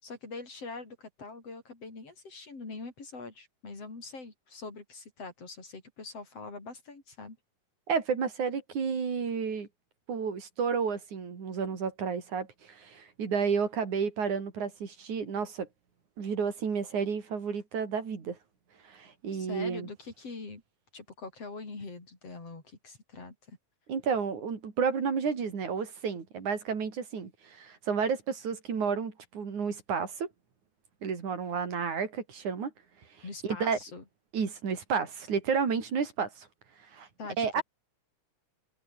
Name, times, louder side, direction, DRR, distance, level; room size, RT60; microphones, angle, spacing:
voice 1, 0.0-7.4 19.3-20.6 20.9-23.6 33.2-34.0 37.2-37.6, left 3 dB, 55° left, 6.7 m, -43 dB
voice 2, 7.9-9.7 10.1-15.7 16.2-18.4 18.8-19.9 23.9-30.3 31.0-32.7 33.1-33.8 34.3-36.5 36.8-37.1 37.4-37.6, right 6 dB, 85° right, 5.2 m, -31 dB
omnidirectional pair, 3.3 m